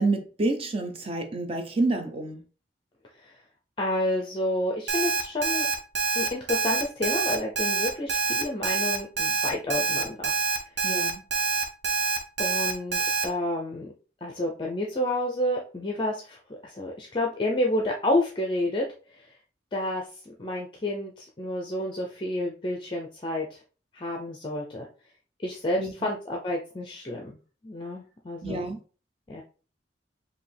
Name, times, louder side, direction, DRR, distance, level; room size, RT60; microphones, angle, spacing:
voice 1, 0.0-2.4 10.8-11.2 25.8-25.9 28.4-28.8, right 2 dB, 30° right, 0.7 m, -28 dB
voice 2, 3.8-5.7 6.2-10.3 12.4-13.9 14.2-18.9 19.7-20.1 20.4-23.6 23.9-24.9 25.4-27.4 27.6-28.7 29.3-29.4, left 1 dB, 25° left, 0.5 m, -29 dB
Alarm, 4.9-13.2, right 4 dB, 65° right, 0.8 m, -26 dB
4.9 x 2.7 x 3.3 m
head